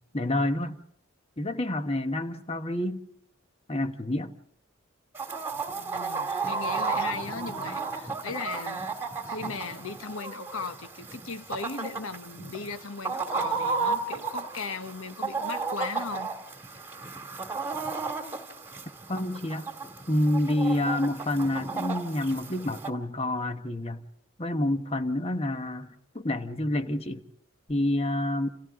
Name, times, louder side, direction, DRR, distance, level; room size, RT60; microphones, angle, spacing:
voice 1, 0.1-0.8 1.4-3.0 3.7-4.3 19.1-19.7 20.1-24.0 24.4-27.2 27.7-28.5, left 1 dB, 25° left, 1.1 m, -28 dB
Chicken rooster, 5.2-22.9, right 4 dB, 10° right, 2.1 m, -34 dB
voice 2, 5.8-8.9 9.3-16.3, left 4 dB, 65° left, 1.1 m, -37 dB
29.5 x 28.5 x 3.7 m
head